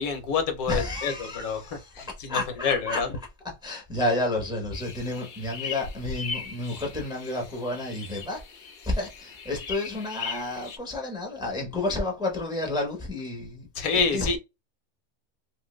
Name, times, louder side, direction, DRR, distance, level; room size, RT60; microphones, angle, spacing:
voice 1, 0.0-3.1 13.7-14.4, left 5 dB, 75° left, 1.2 m, -27 dB
voice 2, 0.7-3.0 3.6-8.4 8.8-13.7 14.1-14.4, left 2 dB, 5° right, 0.7 m, -31 dB
sound 1, 4.7-10.8, left 6 dB, 50° left, 0.6 m, -39 dB
2.9 x 2.6 x 3.0 m
omnidirectional pair, 1.5 m